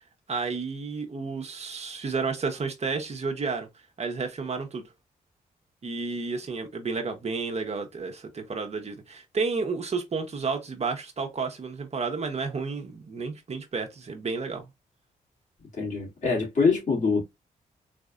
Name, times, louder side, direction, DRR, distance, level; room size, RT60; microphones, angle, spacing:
voice 1, 0.3-3.7 4.0-4.9 5.8-14.7, right 4 dB, 45° right, 0.9 m, -31 dB
voice 2, 15.8-17.2, left 4 dB, 55° left, 2.5 m, -24 dB
4.2 x 2.6 x 2.4 m
cardioid pair, 65°, 16 cm